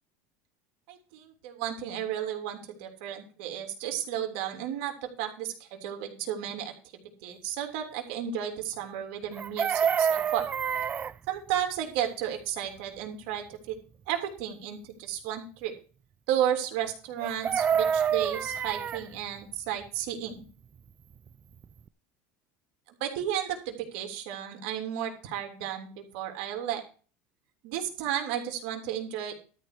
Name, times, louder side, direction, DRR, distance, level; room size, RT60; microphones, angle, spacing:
voice 1, 0.9-10.4 11.3-13.8 14.1-15.7 16.3-20.4 22.9-26.8 27.6-29.3, right 10 dB, 70° right, 4 dB, 3.1 m, -33 dB
Chicken rooster, 9.3-11.1 17.2-19.0 21.3-21.4 21.6-21.9, right 7 dB, 25° right, 0.4 m, -27 dB
13.0 x 4.4 x 8.2 m, 0.37 s
supercardioid pair, 135°, 6 cm